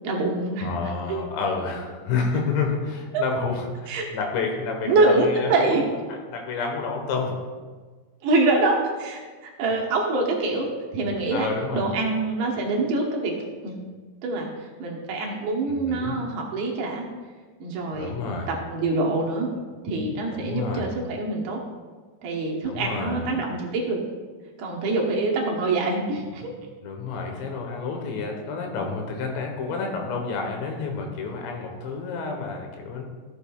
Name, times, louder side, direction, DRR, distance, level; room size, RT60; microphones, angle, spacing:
voice 1, 0.0-0.7 1.1-1.2 3.1-3.2 3.9-4.1 4.8-5.8 8.2-10.7 10.9-13.3 13.6-13.8 14.2-17.1 17.6-19.5 19.8-21.6 22.2-24.0 24.6-26.5, right 2 dB, 70° right, -1 dB, 2.8 m, -25 dB
voice 2, 0.6-5.8 6.1-7.4 9.7-9.8 11.3-11.9 15.7-16.2 17.9-18.5 20.3-20.9 22.6-23.2 26.8-33.0, left 4 dB, 80° left, 2 dB, 3.4 m, -29 dB
14.5 x 7.8 x 2.3 m, 1.4 s
omnidirectional pair, 5.1 m